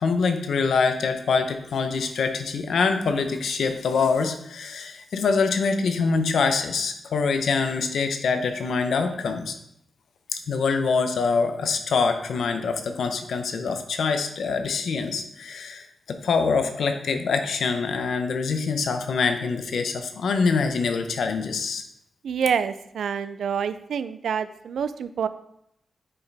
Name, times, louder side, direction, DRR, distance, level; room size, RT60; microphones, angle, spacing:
voice 1, 0.0-9.5 10.5-21.8, left 5 dB, 85° left, 6 dB, 0.7 m, -25 dB
voice 2, 22.2-25.3, right 7 dB, 85° right, 13 dB, 0.4 m, -27 dB
8.6 x 4.7 x 3.4 m, 0.76 s
cardioid pair, 70°, 0 cm